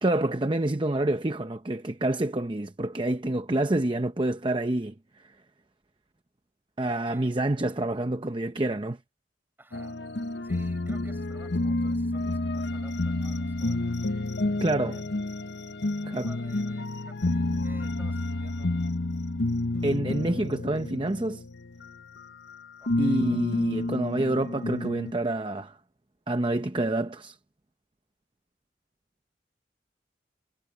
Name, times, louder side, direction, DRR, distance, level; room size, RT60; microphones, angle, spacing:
voice 1, 0.0-4.9 6.8-9.0 14.6-15.0 16.0-16.3 19.8-21.4 23.0-25.8 26.3-27.4, right 1 dB, 25° right, 0.7 m, -27 dB
voice 2, 7.1-7.4 9.6-10.0 10.4-15.0 15.9-18.7 22.8-23.2, right 1 dB, 10° right, 7.3 m, -55 dB
sound 1, 9.7-22.6 22.8-25.1, left 2 dB, 70° left, 0.9 m, -30 dB
head